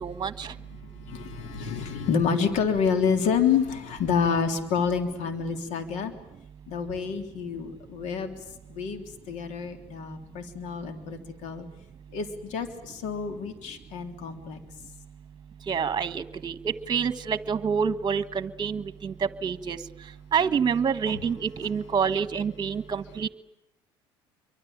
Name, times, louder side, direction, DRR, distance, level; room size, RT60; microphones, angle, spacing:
voice 1, 0.0-0.5 15.7-19.8 20.3-23.3, right 6 dB, 35° right, 13 dB, 1.5 m, -27 dB
voice 2, 0.7-6.1 6.7-8.3 8.7-11.6 12.1-14.6 21.6-21.7, left 6 dB, 65° left, 6 dB, 3.4 m, -28 dB
28.0 x 24.0 x 8.9 m, 0.84 s
hypercardioid pair, 70°, 13 cm